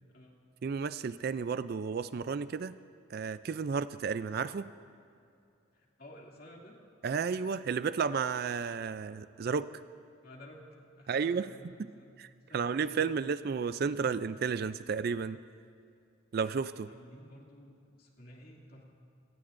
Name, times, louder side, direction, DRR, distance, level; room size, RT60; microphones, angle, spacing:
voice 1, 0.6-2.8 3.1-4.7 7.0-9.7 11.1-11.5 12.2-15.4 16.3-16.9, right 5 dB, 50° right, 14 dB, 0.3 m, -32 dB
voice 2, 5.7-6.8 10.2-10.6 11.0-12.1 12.5-13.4 16.9-18.8, left 1 dB, 50° left, -2 dB, 2.5 m, -53 dB
29.0 x 18.0 x 2.6 m, 2.5 s
head